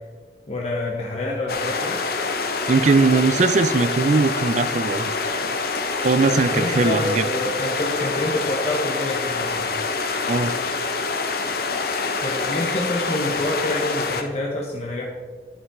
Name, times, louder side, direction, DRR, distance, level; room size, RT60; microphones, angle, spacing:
voice 1, 0.5-2.0 6.3-9.7 12.2-15.1, left 1 dB, 40° left, -2 dB, 1.0 m, -27 dB
sound 1, 1.5-14.2, left 4 dB, 55° left, 0.7 m, -26 dB
voice 2, 2.7-5.1 6.0-7.3 10.3-10.6, right 4 dB, 40° right, 12 dB, 0.4 m, -19 dB
11.5 x 5.6 x 3.6 m, 1.5 s
head